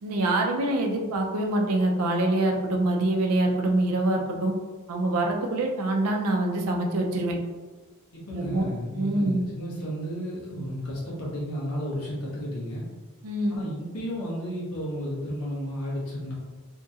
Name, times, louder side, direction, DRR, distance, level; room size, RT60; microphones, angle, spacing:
voice 1, 0.0-4.5 4.9-7.4 8.3-8.6 9.0-9.4 13.2-13.6, right 2 dB, 85° right, 2 dB, 0.5 m, -25 dB
voice 2, 8.1-12.8 13.5-16.3, equal, 80° left, -5 dB, 0.9 m, -33 dB
2.8 x 2.7 x 2.4 m, 1.3 s
head